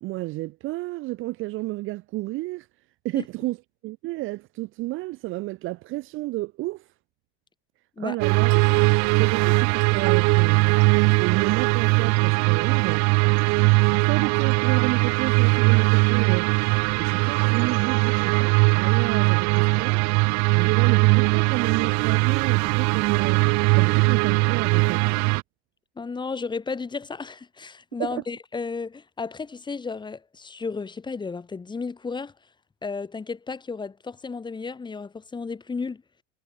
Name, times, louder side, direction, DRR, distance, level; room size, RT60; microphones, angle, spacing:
voice 1, 0.0-2.7 3.0-3.6 3.8-6.8 8.0-8.6 9.2-10.8 11.2-13.1 13.8-16.5 17.0-20.0 20.5-23.4 23.8-25.0 28.0-28.2, right 20 dB, 40° right, 0.6 m, -31 dB
sound 1, 8.2-25.4, right 31 dB, 55° right, 0.9 m, -20 dB
voice 2, 26.0-32.3 32.8-36.0, left 4 dB, 15° left, 1.9 m, -33 dB
supercardioid pair, 130°, 32 cm